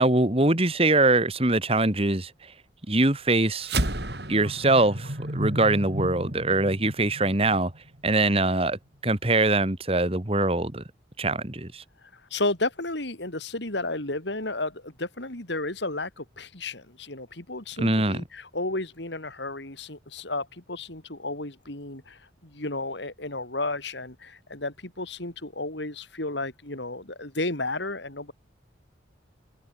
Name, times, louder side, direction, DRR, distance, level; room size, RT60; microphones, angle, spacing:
voice 1, 0.0-2.5 2.9-3.8 4.3-7.7 8.0-10.8 11.2-11.8 17.8-18.2, right 2 dB, 30° right, 1.9 m, -23 dB
sound 1, 3.6-8.3, right 1 dB, 60° right, 4.3 m, -32 dB
voice 2, 12.0-28.3, left 2 dB, 70° left, 4.1 m, -33 dB
head